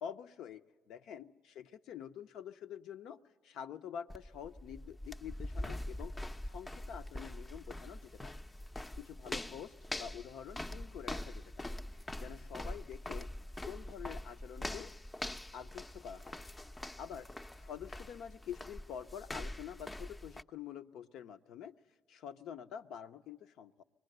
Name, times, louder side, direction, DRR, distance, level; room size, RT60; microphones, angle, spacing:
voice 1, 0.0-3.2 3.4-6.1 6.4-8.3 9.0-11.8 12.2-13.3 13.6-14.9 15.5-16.4 17.0-17.3 17.6-21.7 22.1-23.8, left 8 dB, 75° left, 9 dB, 0.7 m, -47 dB
sound 1, 4.1-20.4, left 1 dB, 20° left, 0.6 m, -44 dB
25.0 x 20.0 x 7.9 m, 1.6 s
supercardioid pair, 70°, 0 cm